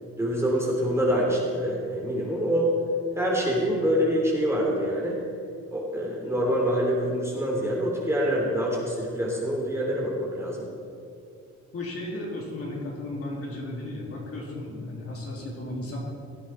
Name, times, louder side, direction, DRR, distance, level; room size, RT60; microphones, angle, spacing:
voice 1, 0.2-2.7 3.2-5.2 5.7-10.7, equal, 10° right, -3 dB, 3.3 m, -25 dB
voice 2, 11.7-16.0, left 1 dB, 50° left, -3 dB, 3.7 m, -34 dB
16.5 x 9.7 x 4.6 m, 2.5 s
cardioid pair, 90°, 30 cm